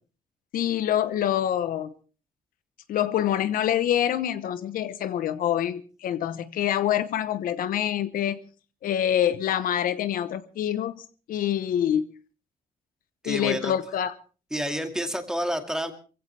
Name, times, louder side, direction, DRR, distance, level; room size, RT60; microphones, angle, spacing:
voice 1, 0.5-1.9 2.9-8.4 8.8-12.1 13.2-14.1, left 10 dB, 70° left, 13 dB, 1.0 m, -26 dB
voice 2, 13.2-13.7 14.5-15.9, equal, 5° right, 6 dB, 2.1 m, -29 dB
25.5 x 16.0 x 3.3 m, 0.36 s
cardioid pair, 130°, 15 cm